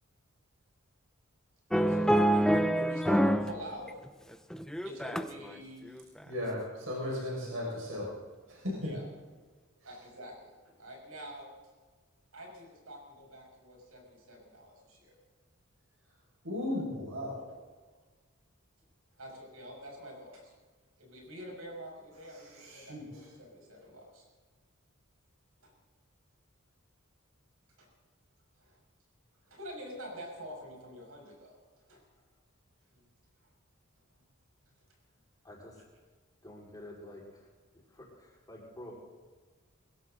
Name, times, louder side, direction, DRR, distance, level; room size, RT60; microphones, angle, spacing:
sound 1, 1.7-3.5 3.9-5.5 5.9-6.2, equal, 5° left, 0.6 m, -26 dB
voice 1, 1.7-3.9 4.8-5.9 8.8-9.0 9.8-11.5 12.3-15.2 19.2-20.5 21.0-24.3 25.6-25.7 27.8-27.9 28.6-28.8 29.4-31.6 31.9-32.0 32.9-33.0, equal, 85° right, 0 dB, 6.4 m, -46 dB
voice 2, 6.3-8.1 8.5-8.8 16.4-17.6 22.6-23.3, left 1 dB, 70° right, -4 dB, 5.7 m, -36 dB
voice 3, 35.4-35.8 36.4-37.5 37.9-38.9, left 1 dB, 20° left, -4 dB, 4.8 m, -49 dB
21.0 x 16.5 x 4.0 m, 1.4 s
head